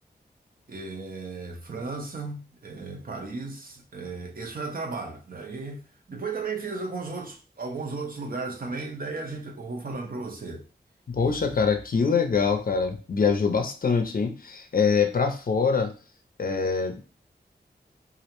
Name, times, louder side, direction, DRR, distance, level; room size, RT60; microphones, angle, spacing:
voice 1, 0.7-10.7, right 3 dB, 55° right, 0.7 m, -35 dB
voice 2, 11.1-15.9 16.4-17.0, left 5 dB, 55° left, 0.5 m, -24 dB
2.5 x 2.0 x 2.9 m
wide cardioid pair, 65°, 18 cm